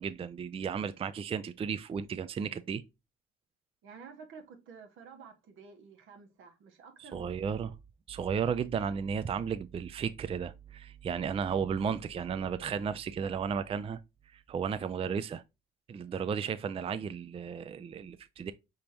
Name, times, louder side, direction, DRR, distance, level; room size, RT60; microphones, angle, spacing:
voice 1, 0.0-2.8 7.0-7.7 8.1-14.0 14.3-15.4 15.9-18.5, right 7 dB, 30° right, 0.4 m, -34 dB
voice 2, 3.8-7.7, right 5 dB, 80° right, 1.2 m, -51 dB
5.0 x 3.6 x 2.8 m
cardioid pair, 90°, 20 cm